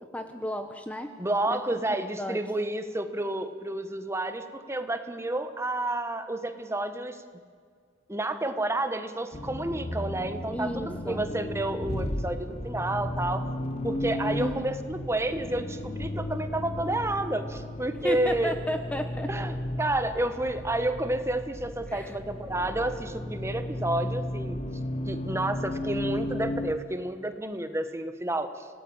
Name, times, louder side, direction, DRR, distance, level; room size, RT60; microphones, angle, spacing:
voice 1, 0.1-1.1 1.5-1.8 2.2-2.4 10.5-11.3 14.4-14.6 18.0-19.3 21.9-22.2, equal, 5° left, 7 dB, 0.9 m, -33 dB
voice 2, 1.2-7.2 8.1-13.5 13.8-18.6 19.3-24.6 25.1-28.7, right 1 dB, 15° right, 9 dB, 1.2 m, -30 dB
Accelerating revving vroom, 9.3-26.8, left 1 dB, 30° left, 1.0 m, -34 dB
26.0 x 18.0 x 8.8 m, 2.1 s
head